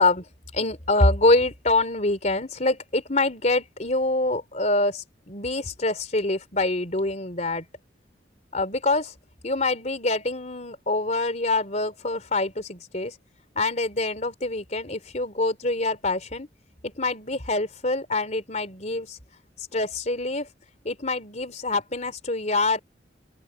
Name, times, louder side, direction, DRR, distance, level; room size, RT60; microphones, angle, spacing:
voice 1, 0.0-7.7 8.5-9.1 9.4-13.2 13.6-16.5 17.0-19.2 19.6-20.5 20.8-22.8, left 2 dB, 40° left, 3.6 m, -25 dB
open air
head